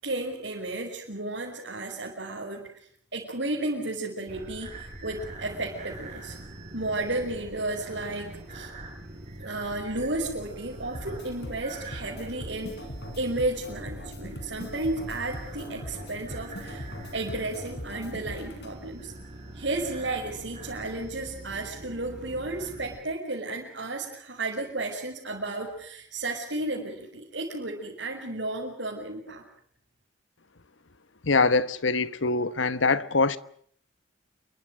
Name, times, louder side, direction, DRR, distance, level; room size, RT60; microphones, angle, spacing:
voice 1, 0.0-2.7 3.1-6.4 6.7-8.7 9.4-12.8 13.2-19.1 19.5-29.4, right 2 dB, 65° right, 5.9 m, -33 dB
sound 1, 4.3-23.0, right 1 dB, 35° right, 7.9 m, -43 dB
sound 2, 10.9-18.7, equal, 60° left, 4.8 m, -41 dB
voice 2, 31.2-33.4, left 3 dB, 90° left, 1.2 m, -23 dB
28.5 x 24.0 x 6.5 m
head